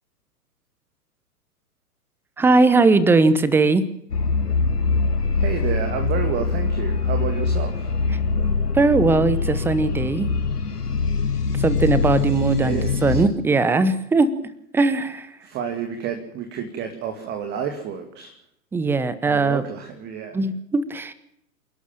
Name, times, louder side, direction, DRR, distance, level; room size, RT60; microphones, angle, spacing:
voice 1, 2.4-3.8 8.7-10.3 11.6-14.3 14.7-15.3 18.7-19.6 20.3-21.1, right 3 dB, 5° right, 15 dB, 0.8 m, -19 dB
sound 1, 4.1-13.3, left 4 dB, 75° left, 1.7 m, -23 dB
voice 2, 5.4-8.0 12.5-13.3 15.4-18.4 19.2-20.4, right 7 dB, 20° right, 5 dB, 2.2 m, -30 dB
27.5 x 12.0 x 8.8 m, 0.75 s
figure-of-eight pair, 115°, 47 cm